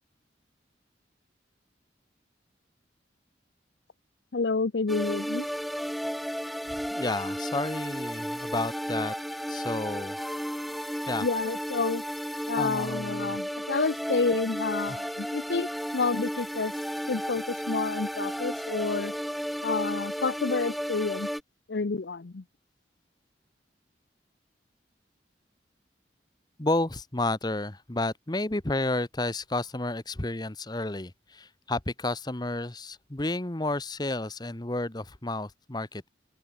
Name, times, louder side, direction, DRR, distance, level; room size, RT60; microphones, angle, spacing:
voice 1, 4.3-5.5 11.2-12.0 12.5-16.7 17.1-19.1 19.6-21.3 21.7-22.4, left 4 dB, 70° left, 0.7 m, -29 dB
sound 1, 4.9-21.4, equal, ahead, 0.8 m, -33 dB
voice 2, 6.9-9.1 9.5-10.2 11.1-11.3 12.6-13.4 14.9-15.0 26.6-36.1, left 2 dB, 25° left, 1.0 m, -31 dB
open air
head